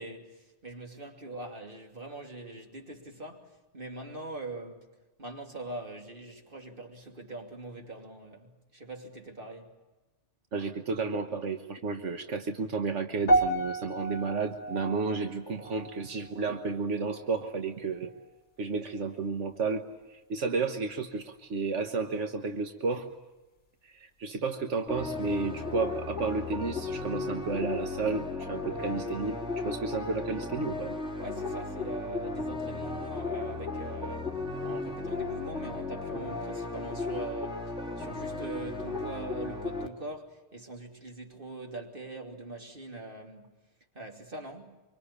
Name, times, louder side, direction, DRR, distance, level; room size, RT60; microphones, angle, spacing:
voice 1, 0.0-4.9 5.2-9.8 31.2-43.5 43.9-44.8, right 2 dB, 45° right, 3.1 m, -42 dB
voice 2, 10.5-18.1 18.6-23.1 23.8-31.0, right 4 dB, 85° right, 1.6 m, -32 dB
sound 1, 13.3-17.7 17.9-18.3 19.0-19.1, right 1 dB, 45° left, 1.6 m, -32 dB
sound 2, 24.9-39.9, left 3 dB, 5° right, 2.5 m, -35 dB
25.5 x 24.5 x 8.6 m
omnidirectional pair, 1.2 m